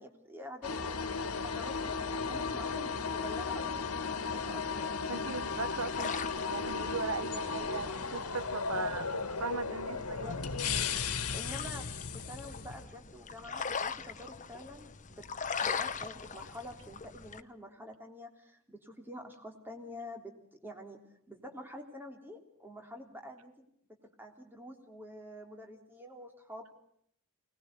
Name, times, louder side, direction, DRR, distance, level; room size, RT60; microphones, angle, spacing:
voice 1, 0.0-2.0 2.3-5.3 8.7-8.8 9.9-10.4 11.3-11.9 12.1-20.3 20.6-21.0 21.3-23.5 24.2-26.7, left 1 dB, 10° right, 3 dB, 3.3 m, -47 dB
sound 1, 0.6-12.9, left 5 dB, 90° left, 1.7 m, -35 dB
voice 2, 5.1-9.1 9.4-10.3, right 4 dB, 70° right, 13 dB, 1.1 m, -38 dB
sound 2, 5.2-17.4, left 6 dB, 35° left, 1.0 m, -42 dB
25.0 x 19.5 x 8.0 m, 0.69 s
head